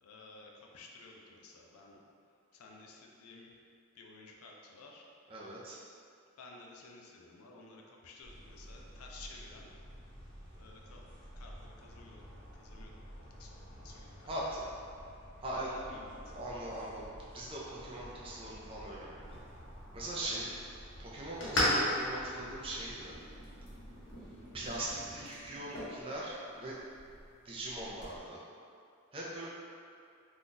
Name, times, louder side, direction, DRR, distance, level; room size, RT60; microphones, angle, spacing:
voice 1, 0.0-2.0 2.5-3.5 4.0-5.0 6.4-9.7 10.5-12.9 13.4-14.3 15.7-16.2 20.2-20.4, left 3 dB, 90° left, 0 dB, 0.4 m, -54 dB
voice 2, 5.3-5.8 14.2-14.8 15.4-16.0 16.3-17.1 17.3-19.3 19.9-20.5 21.0-23.1 24.5-26.7 27.4-28.4 29.1-29.5, right 1 dB, 25° right, -6 dB, 0.4 m, -40 dB
sound 1, 8.2-24.9, equal, 45° right, 1.2 m, -52 dB
sound 2, 19.2-28.2, equal, 55° left, 0.8 m, -38 dB
2.6 x 2.3 x 3.8 m, 2.4 s
head